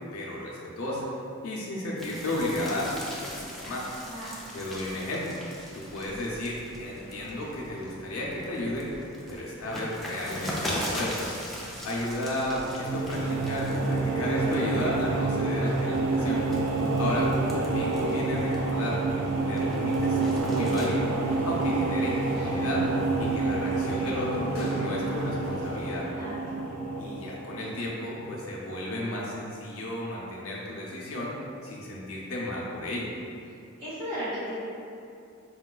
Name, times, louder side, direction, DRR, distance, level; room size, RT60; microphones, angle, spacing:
voice 1, 0.1-1.1 1.4-3.9 4.5-5.4 5.7-9.0 9.3-11.2 11.8-16.4 17.0-17.3 17.6-21.1 21.5-22.9 23.2-26.1 27.0-31.3 31.6-33.1, left 1 dB, 90° left, -4 dB, 0.6 m, -33 dB
sound 1, 2.0-7.9 8.3-14.2 14.5-15.0 15.6-18.9 19.3-20.9, equal, ahead, 0.4 m, -39 dB
voice 2, 4.0-4.4 21.3-21.5 26.1-26.7 33.8-34.5, equal, 40° right, -11 dB, 0.9 m, -36 dB
sound 2, 6.1-26.0, equal, 50° left, 0.7 m, -47 dB
sound 3, 12.5-27.8, right 3 dB, 75° right, 0.3 m, -28 dB
4.9 x 2.2 x 2.3 m, 2.6 s
head